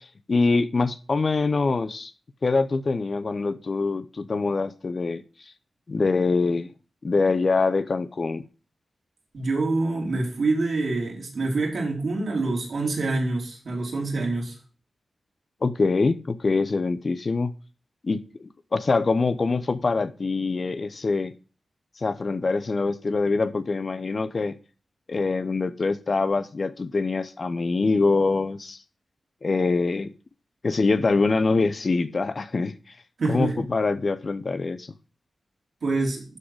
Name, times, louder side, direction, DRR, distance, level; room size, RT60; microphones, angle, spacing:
voice 1, 0.0-2.1 2.4-5.2 5.9-6.7 7.0-8.4 15.6-17.5 18.0-21.3 22.0-24.6 25.1-28.8 29.4-30.1 30.6-32.7 33.3-34.9, left 3 dB, 55° left, 0.7 m, -24 dB
voice 2, 9.3-14.5 33.2-33.5 35.8-36.2, right 3 dB, 75° right, 3.3 m, -26 dB
12.0 x 4.0 x 4.7 m
cardioid pair, 50°, 0 cm